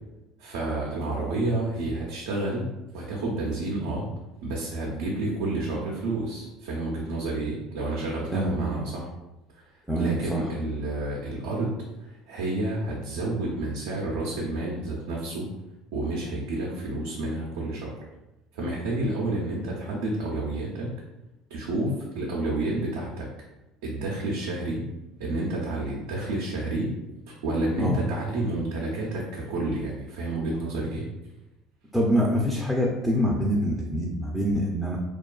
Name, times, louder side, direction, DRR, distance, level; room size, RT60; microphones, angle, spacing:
voice 1, 0.4-4.1 4.4-9.1 9.5-9.6 10.0-15.5 15.9-18.0 18.5-21.0 21.5-23.3 23.8-24.9 25.2-26.9 27.3-31.1, right 2 dB, 80° right, -4 dB, 0.5 m, -30 dB
voice 2, 8.3-8.6 9.9-10.4 27.8-28.0 31.9-35.0, equal, 5° right, -2 dB, 0.4 m, -25 dB
2.4 x 2.3 x 2.2 m, 0.99 s
supercardioid pair, 90°, 0 cm